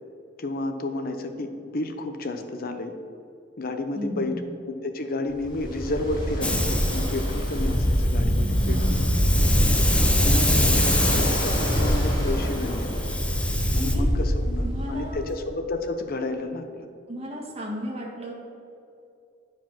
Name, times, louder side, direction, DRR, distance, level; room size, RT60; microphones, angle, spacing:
voice 1, 0.4-2.9 3.6-4.3 4.6-9.0 9.2-9.5 10.2-12.9 13.7-16.9, left 2 dB, 50° left, 7 dB, 0.7 m, -31 dB
voice 2, 3.9-4.4 8.4-9.1 13.7-14.1 14.6-15.2 17.1-18.3, equal, 35° right, -2 dB, 1.6 m, -34 dB
Ocean, 5.4-15.3, equal, 25° left, 2.2 m, -24 dB
Hiss, 6.4-13.9, left 1 dB, 5° left, 0.6 m, -27 dB
9.3 x 4.8 x 6.0 m, 2.6 s
head